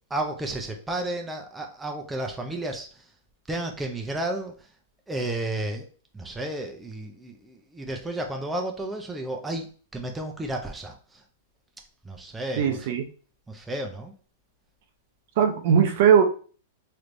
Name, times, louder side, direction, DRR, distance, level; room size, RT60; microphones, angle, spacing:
voice 1, 0.1-3.1 3.5-4.7 5.1-5.9 6.1-11.2 12.0-13.0 13.5-14.1, right 1 dB, 10° right, 2 dB, 0.6 m, -32 dB
voice 2, 12.6-13.0 15.4-16.2, right 8 dB, 60° right, 5 dB, 0.6 m, -19 dB
3.2 x 3.2 x 2.5 m, 0.40 s
hypercardioid pair, 135°, 0 cm